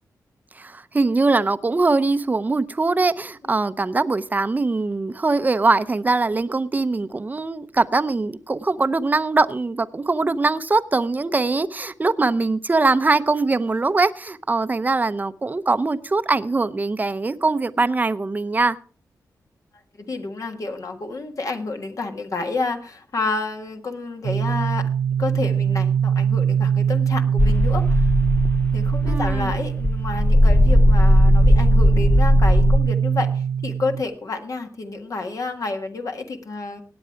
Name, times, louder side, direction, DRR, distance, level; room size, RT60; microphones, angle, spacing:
voice 1, 0.6-18.8 29.1-29.5, right 3 dB, 25° right, 0.7 m, -22 dB
voice 2, 20.0-24.9 25.2-28.1 28.7-36.8, left 3 dB, 55° left, 1.6 m, -29 dB
sound 1, 24.2-34.0, right 8 dB, 75° right, 0.6 m, -22 dB
sound 2, 27.4-32.8, left 1 dB, 20° left, 0.7 m, -17 dB
17.5 x 8.8 x 4.6 m
wide cardioid pair, 100°, 7 cm